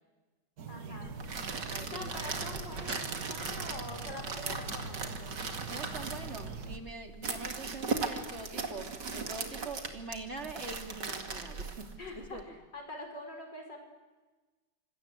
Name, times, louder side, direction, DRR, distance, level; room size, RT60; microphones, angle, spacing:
sound 1, 0.6-6.8, right 4 dB, 60° right, 2.0 m, -43 dB
voice 1, 0.7-1.2 1.8-5.3 12.0-13.8, left 2 dB, 80° left, 4 dB, 6.2 m, -45 dB
sound 2, 1.1-12.4, right 4 dB, 75° right, 2.8 m, -38 dB
voice 2, 1.6-2.1 5.6-11.9 12.2-12.4, right 3 dB, 40° right, 4 dB, 3.0 m, -44 dB
sound 3, 2.8-3.9 4.2-4.3, right 1 dB, 10° right, 1.3 m, -47 dB
27.5 x 26.5 x 8.0 m, 1.2 s
omnidirectional pair, 1.9 m